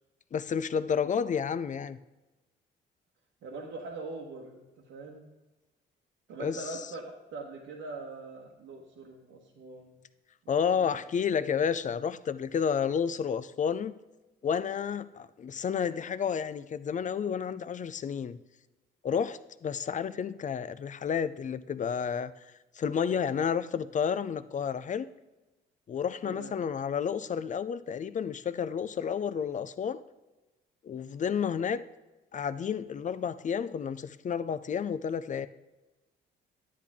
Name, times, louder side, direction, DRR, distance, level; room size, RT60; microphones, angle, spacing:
voice 1, 0.3-2.0 6.4-6.6 10.5-13.9 14.4-18.4 19.0-22.4 22.7-25.1 25.9-30.0 30.8-31.8 32.3-35.5, left 7 dB, 40° left, 0.5 m, -31 dB
voice 2, 3.4-5.3 6.3-10.0 10.4-11.0 26.2-26.5, right 3 dB, 85° right, 1.3 m, -43 dB
10.0 x 8.5 x 3.6 m
cardioid pair, 90°, 20 cm